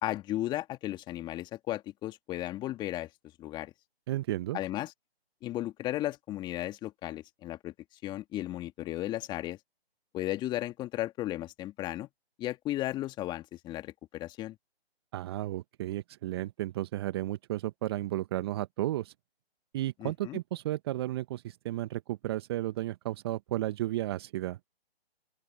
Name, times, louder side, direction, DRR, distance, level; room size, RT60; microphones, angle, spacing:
voice 1, 0.0-3.1 3.4-3.7 4.5-4.9 5.4-7.7 8.0-9.6 10.1-12.1 12.4-14.6 20.0-20.4, left 15 dB, 15° left, 2.0 m, -35 dB
voice 2, 4.1-4.6 15.1-19.1 19.7-24.6, right 15 dB, 25° right, 1.0 m, -33 dB
open air
figure-of-eight pair, 145°, 32 cm